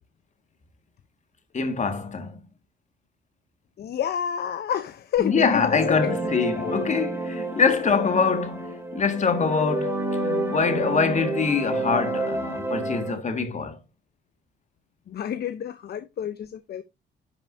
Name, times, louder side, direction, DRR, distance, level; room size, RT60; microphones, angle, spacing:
voice 1, 1.5-2.4 5.2-13.8, left 5 dB, 35° left, 1.8 m, -24 dB
voice 2, 3.8-6.2 6.5-6.7 15.1-16.8, left 9 dB, 55° left, 0.7 m, -29 dB
sound 1, 5.2-13.2, right 2 dB, 10° right, 2.9 m, -30 dB
10.5 x 5.5 x 2.6 m
cardioid pair, 90°, 20 cm